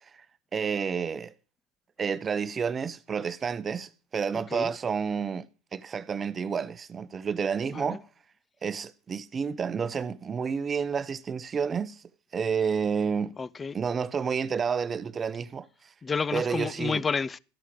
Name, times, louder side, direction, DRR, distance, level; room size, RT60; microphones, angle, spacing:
voice 1, 0.5-1.3 2.0-5.5 5.7-8.0 8.6-12.0 12.3-13.3 13.7-15.7 16.3-17.0, right 6 dB, 30° right, 0.9 m, -30 dB
voice 2, 4.3-4.8 7.7-8.0 13.4-13.8 16.0-17.4, left 5 dB, 25° left, 0.6 m, -30 dB
14.0 x 11.0 x 5.3 m
hypercardioid pair, 80°, 0 cm